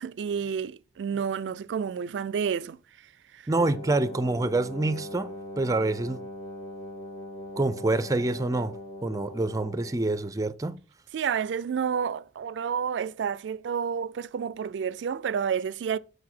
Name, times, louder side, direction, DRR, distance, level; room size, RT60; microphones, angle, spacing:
voice 1, 0.0-2.8 3.3-3.5 11.1-16.0, right 7 dB, 90° right, 0.3 m, -30 dB
Wind instrument woodwind instrument, 3.5-10.1, left 1 dB, 35° left, 1.8 m, -40 dB
voice 2, 3.5-6.3 7.6-8.8 9.0-10.8, right 2 dB, 20° right, 0.5 m, -27 dB
6.5 x 4.7 x 6.0 m
head